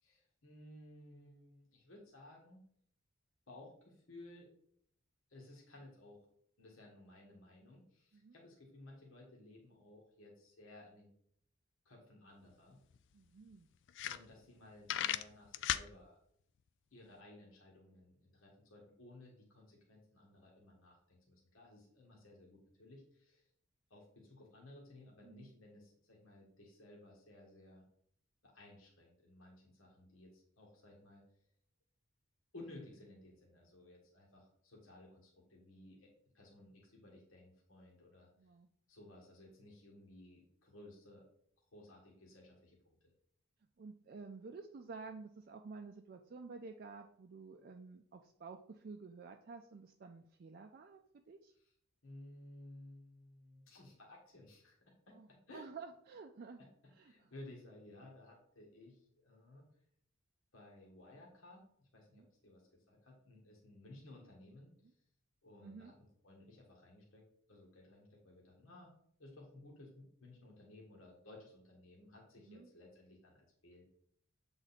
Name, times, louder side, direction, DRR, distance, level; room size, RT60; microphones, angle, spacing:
voice 1, 0.0-2.6 3.5-4.5 5.3-6.2 6.6-11.1 11.8-12.8 14.1-16.1 16.9-23.5 23.9-27.8 28.4-31.2 32.5-38.3 38.9-41.3 41.7-43.1 51.6-51.7 52.0-55.2 55.5-55.7 56.6-56.7 57.0-59.6 60.5-64.7 65.4-65.9 66.2-68.9 69.2-73.8, left 1 dB, 80° left, -2 dB, 1.6 m, -57 dB
sound 1, 12.5-12.6 12.9-13.0 13.5-13.6 13.9-14.6 14.9-15.9, left 11 dB, 60° left, 0.3 m, -36 dB
voice 2, 13.1-13.7 25.2-25.5 38.4-38.7 43.8-51.5 55.1-55.3 55.5-56.6 56.9-57.3 62.1-62.3 65.6-65.9 72.4-72.7, right 4 dB, 45° right, 4 dB, 0.4 m, -51 dB
7.5 x 3.9 x 4.1 m, 0.67 s
head